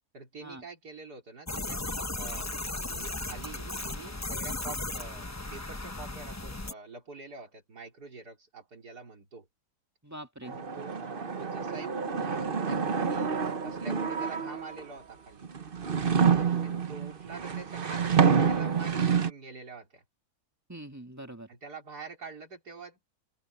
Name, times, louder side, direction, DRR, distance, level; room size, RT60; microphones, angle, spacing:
voice 1, 0.1-1.8 2.2-2.6 2.9-9.5 10.4-11.0 11.4-15.5 16.6-20.0 21.5-23.0, right 4 dB, 90° right, 4.3 m, -46 dB
sound 1, 1.5-6.7, left 2 dB, 15° left, 0.7 m, -36 dB
voice 2, 10.0-10.6 13.1-13.3 16.1-16.6 20.7-21.5, right 1 dB, 10° right, 1.9 m, -45 dB
sound 2, 10.5-14.8 15.4-19.3, right 6 dB, 40° right, 1.1 m, -28 dB
open air
omnidirectional pair, 1.7 m